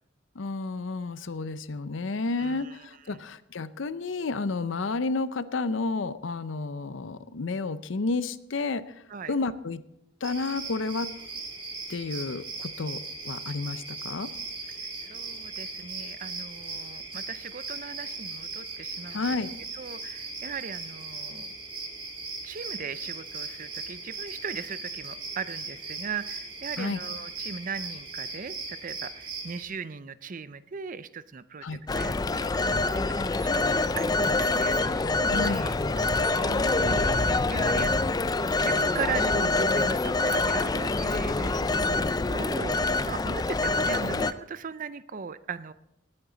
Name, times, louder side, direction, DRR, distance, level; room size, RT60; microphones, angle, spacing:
voice 1, 0.4-8.8 9.3-9.8 10.2-11.1 11.9-14.3 19.1-19.6 26.8-27.0 31.6-31.8 35.3-35.7, left 3 dB, 70° left, 14 dB, 0.6 m, -31 dB
voice 2, 2.4-3.2 9.1-9.3 14.7-19.4 19.7-21.5 22.4-33.6 33.9-45.7, right 5 dB, 40° right, 14 dB, 0.5 m, -38 dB
sound 1, 10.2-29.6, right 3 dB, 25° right, 2.3 m, -38 dB
Telephone, 31.9-44.3, left 3 dB, 20° left, 0.4 m, -25 dB
19.5 x 8.8 x 3.9 m, 0.84 s
head